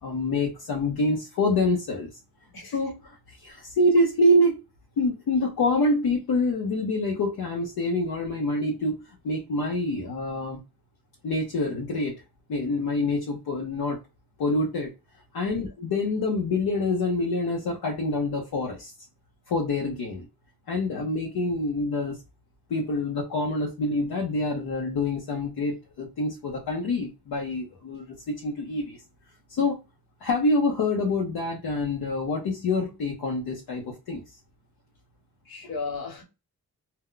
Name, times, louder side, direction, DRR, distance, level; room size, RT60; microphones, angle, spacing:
voice 1, 0.0-2.1 2.7-4.6 5.0-10.6 11.2-12.1 12.5-14.0 14.4-14.9 15.3-18.9 19.5-20.3 20.7-22.2 22.7-29.0 29.5-29.8 30.2-34.2, left 2 dB, 90° left, 0.8 m, -26 dB
voice 2, 35.5-36.2, left 4 dB, 75° left, 1.2 m, -35 dB
2.2 x 2.2 x 3.6 m
cardioid pair, 70°, 36 cm